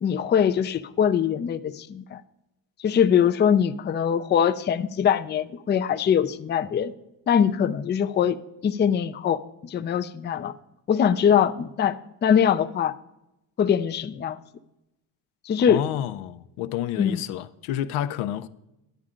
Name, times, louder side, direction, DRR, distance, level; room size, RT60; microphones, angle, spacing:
voice 1, 0.0-2.2 2.8-6.9 7.3-8.4 8.6-10.5 10.9-12.9 13.6-14.4 15.5-15.9 17.0-17.2, left 8 dB, 25° left, 0.4 m, -22 dB
voice 2, 15.7-18.5, left 11 dB, 85° left, 0.7 m, -29 dB
12.0 x 10.0 x 3.7 m
cardioid pair, 95°, 47 cm